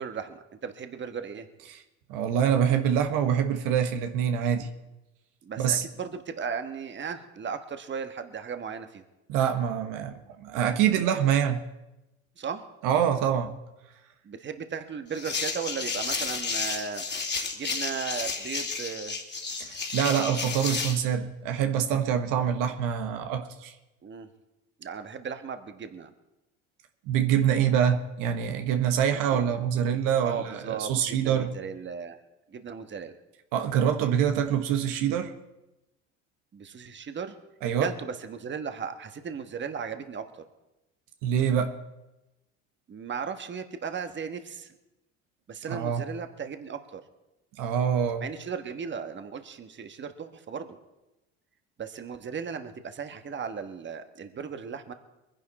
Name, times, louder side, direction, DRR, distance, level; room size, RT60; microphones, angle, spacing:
voice 1, 0.0-1.5 5.4-9.0 12.4-12.6 14.2-17.0 17.5-19.2 24.0-24.3 24.8-26.1 29.1-29.4 30.2-32.2 32.5-33.2 36.5-37.4 37.8-40.4 42.9-44.7 45.5-47.0 48.2-50.8 51.8-54.9, right 6 dB, 35° right, 1.4 m, -36 dB
voice 2, 2.1-4.7 5.6-5.8 9.3-11.6 12.8-13.6 19.6-23.7 27.1-31.5 33.5-35.3 37.6-37.9 41.2-41.8 45.7-46.0 47.6-48.2, right 8 dB, 65° right, 1.3 m, -25 dB
sound 1, 15.1-21.0, left 4 dB, 30° left, 2.6 m, -32 dB
23.0 x 10.5 x 4.3 m
hypercardioid pair, 70°, 34 cm